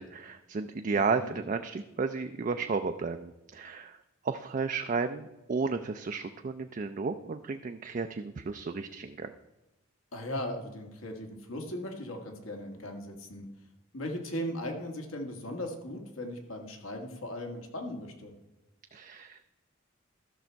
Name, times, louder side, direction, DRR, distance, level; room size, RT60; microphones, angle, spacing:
voice 1, 0.0-4.0 4.2-9.3 18.9-19.5, right 4 dB, 40° right, 7 dB, 0.4 m, -33 dB
voice 2, 0.9-1.4 10.1-13.5 13.9-18.3, left 1 dB, 80° left, 3 dB, 1.6 m, -38 dB
13.5 x 6.2 x 4.5 m, 1.0 s
head